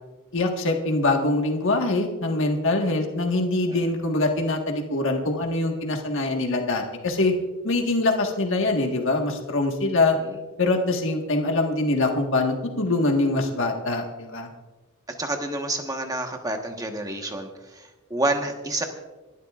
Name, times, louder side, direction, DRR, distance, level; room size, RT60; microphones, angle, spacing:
voice 1, 0.3-7.3 7.6-10.2 10.6-14.5, left 2 dB, 60° left, 2 dB, 1.6 m, -24 dB
voice 2, 15.1-18.8, right 2 dB, 15° right, 4 dB, 1.3 m, -29 dB
28.0 x 12.0 x 2.5 m, 1.2 s
head